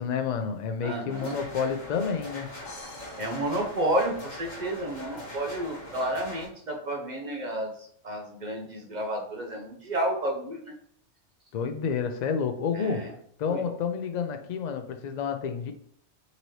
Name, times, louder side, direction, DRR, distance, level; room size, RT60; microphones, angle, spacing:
voice 1, 0.0-2.5 11.5-15.7, left 6 dB, 65° left, 0.4 m, -30 dB
voice 2, 0.8-1.4 3.2-10.6 12.7-13.1 13.5-13.6, right 1 dB, 50° right, 0.6 m, -31 dB
sound 1, 1.1-6.5, left 1 dB, 40° left, 1.2 m, -42 dB
sound 2, 2.6-4.6, left 2 dB, 80° left, 1.3 m, -49 dB
4.0 x 2.8 x 3.0 m
omnidirectional pair, 1.2 m